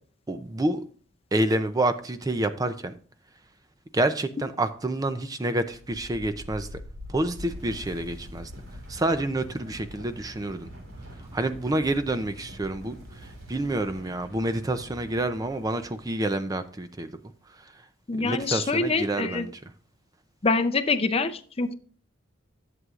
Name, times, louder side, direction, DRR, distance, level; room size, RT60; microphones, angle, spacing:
voice 1, 0.3-0.8 1.3-2.9 3.9-6.7 7.1-8.5 8.9-10.7 11.2-17.1 17.5-17.7 18.2-19.5, right 1 dB, 20° right, 10 dB, 0.4 m, -28 dB
sound 1, 5.6-16.4, equal, 85° right, 3.4 m, -44 dB
voice 2, 18.1-19.5 20.4-21.7, left 3 dB, 30° left, 9 dB, 0.6 m, -25 dB
11.0 x 7.6 x 2.4 m, 0.42 s
head